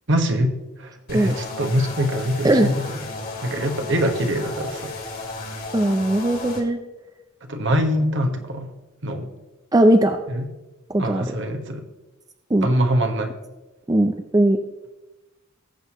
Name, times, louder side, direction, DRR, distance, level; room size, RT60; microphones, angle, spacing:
voice 1, 0.1-2.8 3.4-4.9 7.4-8.7 9.0-9.3 10.3-10.4 11.0-11.8 12.6-13.3, equal, 60° right, 5 dB, 1.4 m, -23 dB
sound 1, 1.1-6.6, left 3 dB, 45° left, 2.3 m, -34 dB
voice 2, 5.7-6.8 9.7-10.2 10.9-11.2 12.5-12.7 13.9-14.6, right 1 dB, 20° right, 7 dB, 0.5 m, -18 dB
19.0 x 7.9 x 3.0 m, 1.1 s
head